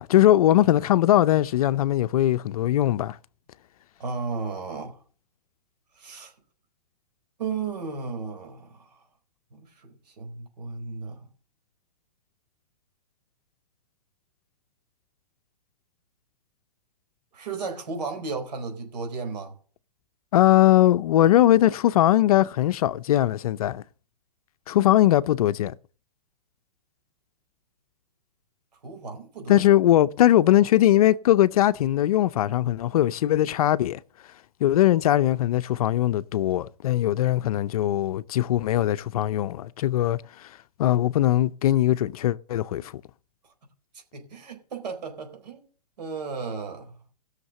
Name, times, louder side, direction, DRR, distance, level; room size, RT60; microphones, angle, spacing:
voice 1, 0.0-3.2 20.3-23.8 24.7-25.7 29.5-34.0 34.6-40.5 40.8-42.9, left 13 dB, 60° left, 0.6 m, -20 dB
voice 2, 4.0-5.0 6.0-6.3 7.4-8.9 9.5-11.2 17.3-19.5 28.8-29.7 44.1-45.6 46.0-46.9, right 4 dB, 80° right, 4.2 m, -34 dB
15.0 x 6.6 x 6.5 m
hypercardioid pair, 145°, 21 cm